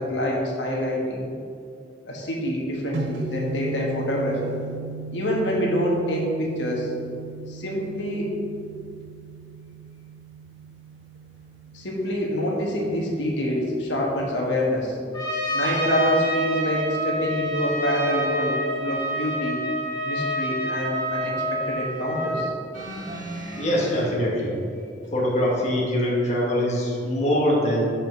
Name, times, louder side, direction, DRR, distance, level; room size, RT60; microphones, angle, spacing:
voice 1, 0.0-1.3 2.1-4.5 5.1-6.9 7.5-8.4 11.7-15.0 15.5-19.6 20.0-22.5, equal, 80° left, -2 dB, 1.3 m, -26 dB
sound 1, 2.9-15.0, right 4 dB, 75° right, 0.6 m, -38 dB
Trumpet, 15.1-22.5, equal, 20° left, 1.5 m, -27 dB
sound 2, 22.7-24.0 25.0-25.1, right 1 dB, 45° right, 1.8 m, -35 dB
voice 2, 23.6-24.8 25.1-27.9, equal, 40° left, -3 dB, 1.2 m, -23 dB
5.9 x 5.0 x 5.9 m, 2.4 s
head